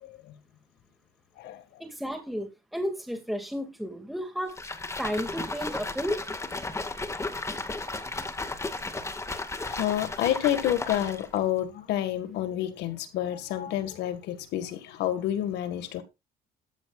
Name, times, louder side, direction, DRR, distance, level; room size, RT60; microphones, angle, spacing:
voice 1, 0.0-0.3 1.4-1.6 9.6-16.0, left 12 dB, 85° left, 1.9 m, -29 dB
voice 2, 1.8-4.6 5.0-6.2, equal, ahead, 2.4 m, -33 dB
sound 1, 4.5-11.4, left 2 dB, 15° left, 1.9 m, -34 dB
13.5 x 13.0 x 2.5 m
cardioid pair, 110°, 17 cm